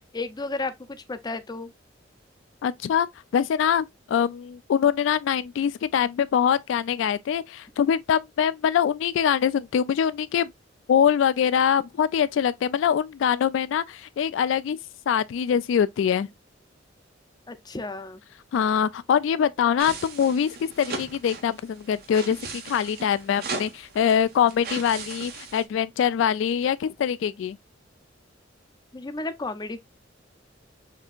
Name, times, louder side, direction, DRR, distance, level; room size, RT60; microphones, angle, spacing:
voice 1, 0.0-1.7 17.5-18.2 28.9-29.8, left 3 dB, 20° left, 0.5 m, -33 dB
voice 2, 2.6-3.1 3.3-10.5 10.9-14.8 15.1-16.3 18.5-27.6, left 8 dB, 75° left, 0.3 m, -23 dB
sound 1, 19.8-25.6, right 3 dB, 55° right, 1.1 m, -37 dB
6.6 x 2.8 x 2.4 m
head